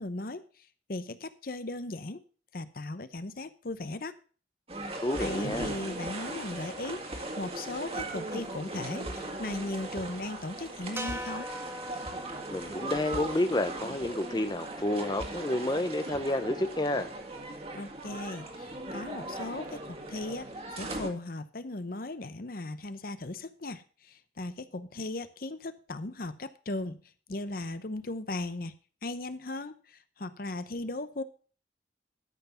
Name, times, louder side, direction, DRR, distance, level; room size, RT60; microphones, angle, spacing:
voice 1, 0.0-2.2 2.5-4.2 5.2-11.5 17.7-27.0 27.3-28.7 29.0-31.2, left 2 dB, 55° left, 12 dB, 0.9 m, -37 dB
sound 1, 4.7-21.1, right 2 dB, 35° right, 2.0 m, -38 dB
voice 2, 4.9-5.7 12.5-17.1, left 1 dB, 25° left, 9 dB, 0.6 m, -30 dB
sound 2, 11.0-15.3, equal, 15° right, 0.8 m, -43 dB
13.0 x 6.0 x 5.6 m, 0.39 s
head